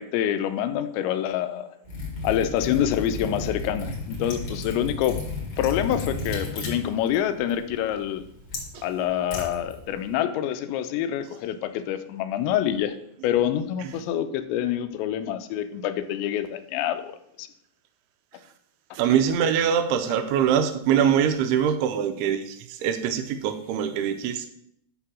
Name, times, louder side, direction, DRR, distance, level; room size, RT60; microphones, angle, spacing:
voice 1, 0.0-1.7 2.2-5.2 5.6-8.3 8.8-13.0 13.2-17.5, left 10 dB, 90° left, 10 dB, 2.9 m, -26 dB
Liquid, 1.8-10.1, left 3 dB, 40° left, 2.5 m, -34 dB
voice 2, 18.9-24.5, right 8 dB, 85° right, 8 dB, 2.5 m, -23 dB
11.0 x 3.7 x 6.1 m, 0.72 s
omnidirectional pair, 5.1 m